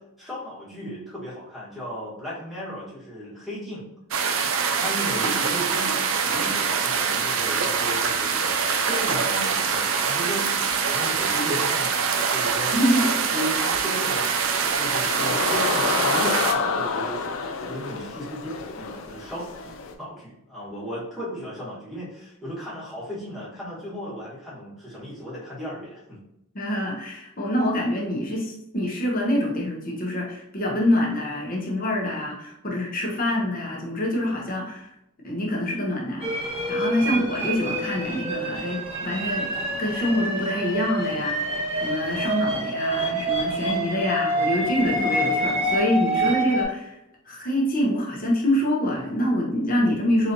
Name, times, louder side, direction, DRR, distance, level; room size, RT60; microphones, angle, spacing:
voice 1, 0.2-3.8 4.8-6.0 6.2-8.3 8.8-12.7 13.3-14.4 14.7-17.2 17.7-19.5 20.0-26.2 37.0-37.1 49.8-50.1, equal, ahead, -8 dB, 1.2 m, -35 dB
sound 1, 4.1-16.5, right 6 dB, 65° right, 0.4 m, -24 dB
voice 2, 12.8-13.1 26.5-34.9 35.2-39.5 39.8-46.9 47.3-50.3, left 1 dB, 40° left, -2 dB, 0.9 m, -25 dB
sound 2, 14.4-19.9, left 4 dB, 65° left, 0.4 m, -28 dB
sound 3, 36.2-46.6, right 1 dB, 25° right, 1.2 m, -27 dB
3.9 x 3.0 x 2.6 m, 0.83 s
head